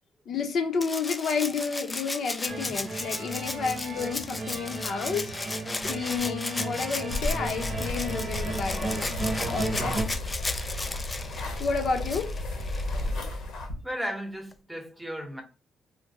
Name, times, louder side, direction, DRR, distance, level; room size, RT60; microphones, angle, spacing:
voice 1, 0.3-5.3 5.8-9.2 9.5-10.2 11.6-12.3, left 5 dB, 60° left, 0.7 m, -30 dB
Rattle (instrument), 0.8-13.1 14.5-14.6, left 2 dB, 20° left, 0.3 m, -35 dB
sound 1, 2.5-10.0, right 2 dB, 40° right, 0.8 m, -35 dB
sound 2, 7.1-13.7, left 1 dB, 80° left, 1.0 m, -33 dB
voice 2, 13.8-15.4, equal, 5° right, 0.9 m, -35 dB
3.8 x 2.1 x 2.7 m
cardioid pair, 90°, 0 cm